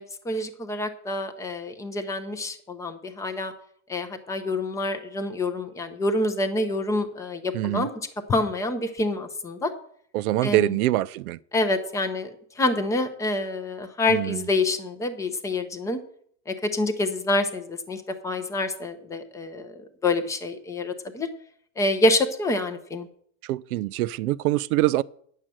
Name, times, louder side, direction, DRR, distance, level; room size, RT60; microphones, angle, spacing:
voice 1, 0.0-3.5 3.9-7.9 8.3-9.7 10.4-10.8 11.5-12.3 12.6-16.0 16.5-21.3 21.8-23.1, left 2 dB, 10° left, 0.4 m, -27 dB
voice 2, 7.5-7.9 10.1-11.4 14.1-14.4 23.5-25.0, right 16 dB, 75° right, 0.5 m, -24 dB
9.7 x 6.6 x 7.5 m
supercardioid pair, 145°, 45 cm